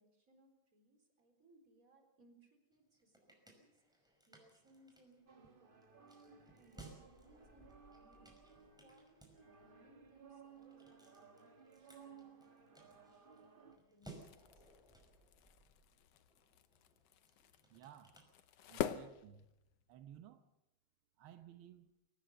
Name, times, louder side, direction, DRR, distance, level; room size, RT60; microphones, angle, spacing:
voice 1, 0.0-14.7, right 1 dB, 25° right, 4 dB, 4.6 m, -69 dB
sound 1, 2.7-19.0, right 2 dB, ahead, 5.3 m, -62 dB
sound 2, 5.3-13.8, right 6 dB, 45° right, 0.6 m, -60 dB
sound 3, 14.0-20.0, left 10 dB, 65° left, 1.8 m, -47 dB
voice 2, 17.7-18.2 18.7-19.5 19.9-20.4 21.2-21.9, right 10 dB, 70° right, 8 dB, 1.2 m, -57 dB
24.5 x 18.5 x 6.9 m, 0.89 s
omnidirectional pair, 3.5 m